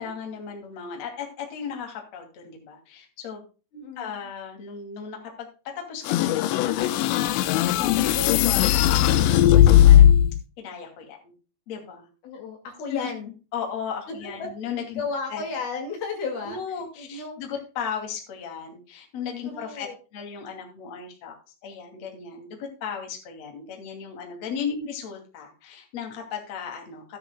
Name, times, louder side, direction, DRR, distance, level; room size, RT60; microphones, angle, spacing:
voice 1, 0.0-3.4 4.0-5.5 5.8-10.1 10.6-11.3 11.7-12.1 12.9-13.1 13.5-15.0 15.3-15.4 16.5-19.9 20.1-21.3 21.6-27.2, left 6 dB, 40° left, 2 dB, 3.2 m, -36 dB
voice 2, 3.7-4.2 12.2-13.3 14.2-14.5 14.9-16.6 17.0-17.4 19.4-19.9, left 4 dB, 65° left, 2 dB, 4.0 m, -33 dB
sound 1, 6.1-10.4, left 11 dB, 85° left, 3.1 m, -17 dB
15.5 x 10.0 x 2.2 m, 0.34 s
omnidirectional pair, 5.0 m